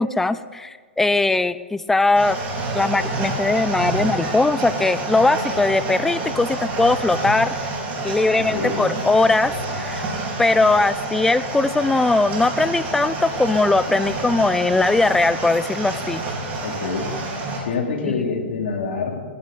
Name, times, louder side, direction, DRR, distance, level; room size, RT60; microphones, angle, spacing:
voice 1, 0.0-2.4 2.7-7.5 8.0-10.1 10.4-16.2 18.0-18.2, left 3 dB, 5° left, 15 dB, 0.4 m, -20 dB
sound 1, 2.1-17.6, right 2 dB, 25° right, 4.3 m, -28 dB
voice 2, 8.4-8.9 16.6-17.1 17.6-19.2, left 4 dB, 65° left, 1 dB, 3.0 m, -26 dB
20.5 x 11.5 x 4.2 m, 1.5 s
hypercardioid pair, 135°, 6 cm